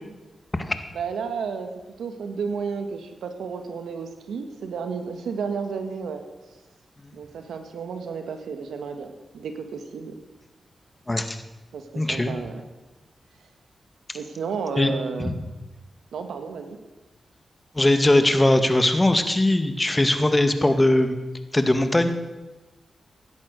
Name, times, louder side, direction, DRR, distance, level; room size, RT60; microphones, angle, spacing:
voice 1, 0.9-1.7 2.0-6.2 7.1-10.1 11.7-12.6 14.1-15.3 16.1-16.8, right 5 dB, 90° right, 6 dB, 1.7 m, -32 dB
voice 2, 11.1-11.4 12.0-12.4 14.8-14.9 15.2-15.3 17.8-21.1 21.5-22.1, left 1 dB, 25° left, 8 dB, 1.9 m, -20 dB
16.5 x 11.0 x 6.4 m, 1.1 s
cardioid pair, 45°, 0 cm